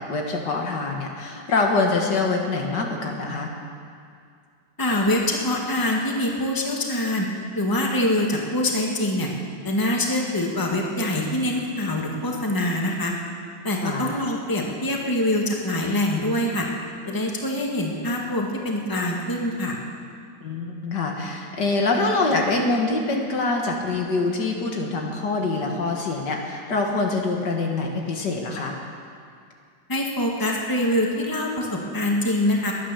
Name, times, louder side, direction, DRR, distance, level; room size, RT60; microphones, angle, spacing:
voice 1, 0.0-3.5 13.8-14.1 20.4-28.8, left 3 dB, 65° left, 1 dB, 2.0 m, -25 dB
voice 2, 4.8-7.3 7.5-9.3 9.6-13.1 13.6-16.7 17.0-19.8 29.9-32.7, left 1 dB, 10° left, -1 dB, 1.7 m, -24 dB
21.0 x 9.4 x 7.0 m, 2.3 s
omnidirectional pair, 2.1 m